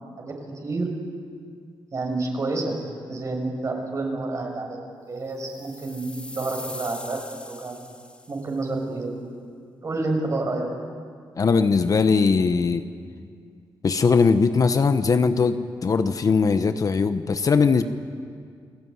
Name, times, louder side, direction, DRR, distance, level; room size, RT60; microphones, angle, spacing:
voice 1, 1.9-2.8 3.1-7.2 7.5-7.7 8.3-9.2 9.8-10.7, right 2 dB, 40° right, 2 dB, 6.5 m, -29 dB
sound 1, 5.3-8.5, left 1 dB, 15° left, 2.4 m, -41 dB
voice 2, 11.4-12.8 13.8-17.8, left 5 dB, 45° left, 9 dB, 1.1 m, -20 dB
30.0 x 19.0 x 9.6 m, 2.2 s
cardioid pair, 115°, 8 cm